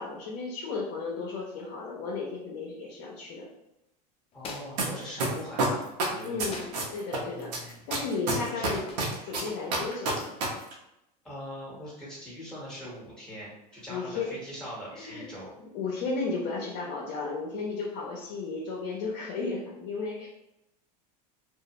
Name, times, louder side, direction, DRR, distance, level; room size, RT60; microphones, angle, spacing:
voice 1, 0.0-3.5 6.2-8.9 9.2-10.3 13.9-14.3 14.9-15.3 15.7-20.3, left 4 dB, 60° left, -4 dB, 0.7 m, -34 dB
sound 1, 4.3-4.8 6.3-6.9 8.9-9.2, left 4 dB, 25° left, 0.4 m, -41 dB
voice 2, 4.3-6.4 7.2-7.8 8.4-8.8 11.2-15.5, equal, 5° left, -7 dB, 1.3 m, -42 dB
sound 2, 4.8-4.9 5.2-7.2 7.5-10.5 10.7-10.8, right 3 dB, 80° right, 0.8 m, -28 dB
2.7 x 2.0 x 2.9 m, 0.87 s
supercardioid pair, 115°, 21 cm